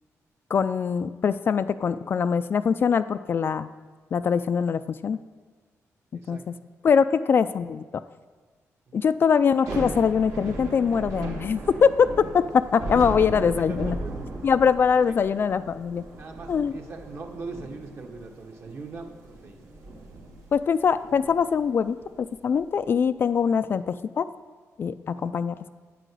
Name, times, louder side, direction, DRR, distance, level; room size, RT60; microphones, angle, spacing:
voice 1, 0.5-3.7 4.1-5.2 6.3-6.4 6.8-8.0 8.9-14.0 14.4-16.0 16.5-16.7 20.5-24.3 24.8-25.6, left 6 dB, 40° left, 12 dB, 0.3 m, -23 dB
voice 2, 6.1-6.5 8.9-9.1 13.0-13.1 13.6-14.4 15.0-15.2 16.2-19.6 23.5-23.7 25.1-25.3, right 3 dB, 50° right, 3 dB, 1.5 m, -41 dB
Thunder / Rain, 9.5-22.6, right 2 dB, 75° right, 2.3 m, -37 dB
9.2 x 9.0 x 7.7 m, 1.4 s
cardioid pair, 140°, 6 cm